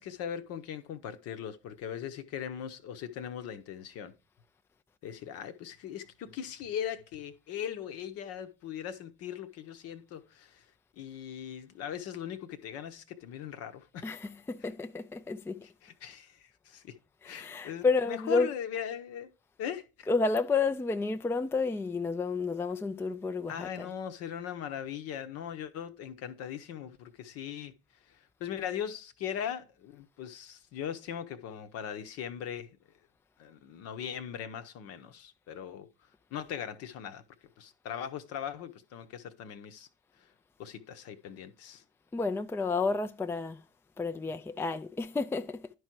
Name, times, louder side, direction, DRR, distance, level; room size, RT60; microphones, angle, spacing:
voice 1, 0.0-4.1 5.0-10.6 11.0-14.2 15.8-17.0 17.2-19.3 19.6-20.1 23.5-27.7 28.1-32.8 33.4-35.9 36.3-37.2 37.6-39.9 40.6-41.8, left 9 dB, 55° left, 0.9 m, -39 dB
voice 2, 14.0-15.7 17.2-18.5 20.0-23.9 42.1-43.6 44.0-45.7, left 4 dB, 10° left, 0.5 m, -31 dB
11.0 x 4.7 x 4.6 m
figure-of-eight pair, 55°, 30 cm